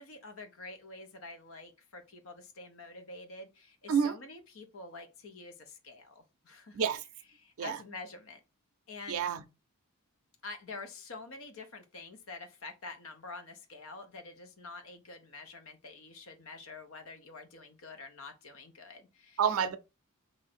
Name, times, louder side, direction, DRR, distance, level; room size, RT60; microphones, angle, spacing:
voice 1, 0.0-6.8 7.4-8.4 8.9-9.3 10.4-19.4, left 3 dB, 65° left, 0.7 m, -47 dB
voice 2, 9.1-9.4 19.4-19.8, right 7 dB, 75° right, 0.5 m, -28 dB
3.0 x 2.6 x 4.2 m
head